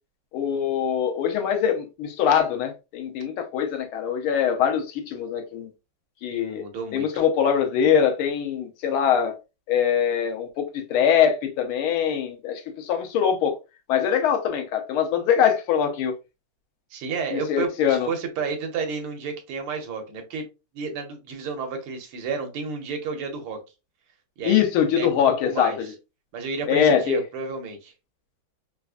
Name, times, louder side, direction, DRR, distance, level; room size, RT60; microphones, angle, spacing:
voice 1, 0.3-5.7 6.2-6.6 6.9-9.4 9.7-13.6 13.9-16.1 17.3-18.1 24.4-25.9 26.7-27.2, left 8 dB, 85° left, 1.6 m, -23 dB
voice 2, 6.3-7.1 16.9-20.5 20.7-23.6 24.4-24.6 24.9-25.8 26.3-27.9, right 5 dB, 85° right, 1.8 m, -31 dB
4.4 x 2.4 x 2.3 m
omnidirectional pair, 2.3 m